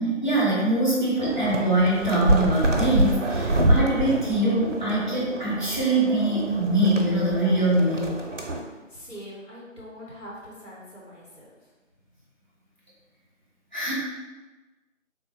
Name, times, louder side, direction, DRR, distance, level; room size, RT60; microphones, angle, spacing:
voice 1, 0.0-8.1 13.7-13.9, right 1 dB, 35° left, -8 dB, 0.9 m, -23 dB
sound 1, 1.2-8.6, right 1 dB, 70° right, 0.6 m, -26 dB
voice 2, 8.7-11.5, equal, 70° left, -6 dB, 1.2 m, -43 dB
3.7 x 2.2 x 2.9 m, 1.2 s
figure-of-eight pair, 175°, 39 cm